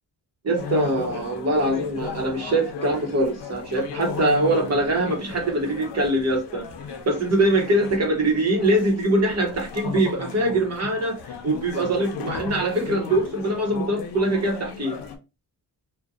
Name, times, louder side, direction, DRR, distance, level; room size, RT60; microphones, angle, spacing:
voice 1, 0.4-6.6 7.1-11.2 11.4-15.0, right 1 dB, 40° right, 0.8 m, -23 dB
sound 1, 0.6-15.2, left 6 dB, 75° left, 0.7 m, -36 dB
2.7 x 2.1 x 2.3 m
wide cardioid pair, 170°, 41 cm